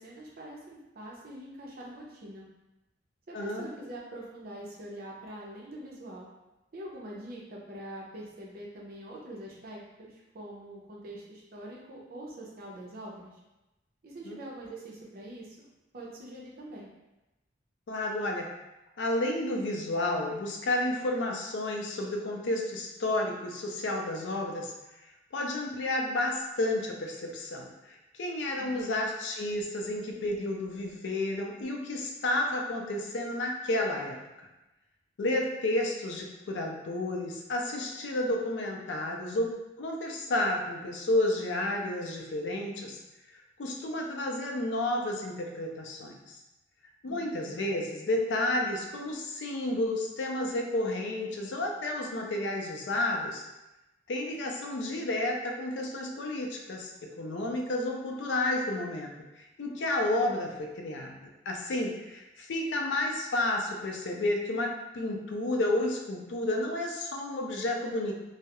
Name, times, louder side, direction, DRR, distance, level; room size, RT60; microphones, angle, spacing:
voice 1, 0.0-2.5 3.3-6.3 6.7-13.3 14.0-16.9 28.5-28.9 47.1-47.6, right 1 dB, 55° right, -3 dB, 0.6 m, -44 dB
voice 2, 3.3-3.7 14.3-14.4 17.9-18.5 19.0-24.7 25.3-34.2 35.2-43.0 43.6-46.4 47.0-53.4 54.1-59.1 59.4-61.2 61.5-68.1, left 1 dB, 85° left, 1 dB, 0.4 m, -31 dB
2.2 x 2.0 x 2.8 m, 0.99 s
head